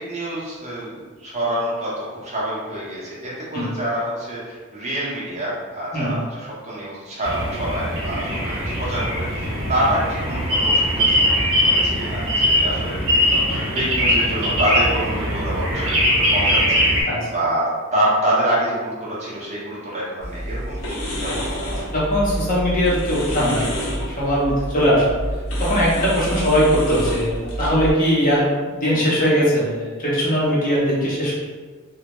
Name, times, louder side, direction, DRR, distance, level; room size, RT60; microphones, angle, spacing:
voice 1, 0.0-21.8, right 1 dB, 35° right, -7 dB, 0.7 m, -26 dB
sound 1, 7.2-17.0, equal, 70° right, 0.7 m, -21 dB
sound 2, 20.2-27.9, equal, 85° left, 0.6 m, -28 dB
voice 2, 21.9-25.2 25.6-31.3, equal, 40° left, -7 dB, 0.7 m, -20 dB
2.2 x 2.0 x 2.9 m, 1.4 s
head